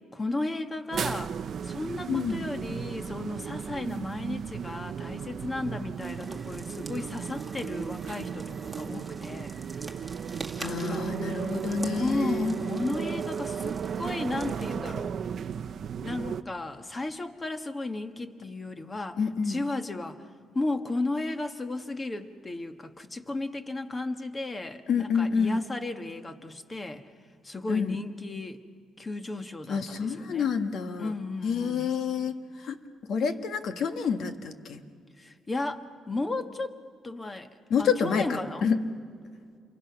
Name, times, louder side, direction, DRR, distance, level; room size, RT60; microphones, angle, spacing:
voice 1, 0.1-1.3 1.6-9.5 10.6-11.1 11.9-15.1 16.0-19.2 19.4-20.2 20.5-27.0 27.4-28.6 29.0-30.5 31.0-31.9 35.2-36.8 37.0-37.5 37.8-38.7, left 2 dB, 25° left, 7 dB, 1.6 m, -34 dB
sound 1, 0.9-16.4, right 7 dB, 55° right, 0.7 m, -35 dB
voice 2, 2.1-2.5 10.6-12.5 19.2-19.6 24.9-25.6 27.7-28.0 29.7-31.1 31.4-32.8 33.1-34.8 37.7-38.8, left 6 dB, 65° left, 7 dB, 1.6 m, -28 dB
sound 2, 6.0-14.7, right 2 dB, 10° right, 2.1 m, -46 dB
28.5 x 23.5 x 6.0 m, 2.2 s
cardioid pair, 90°, 0 cm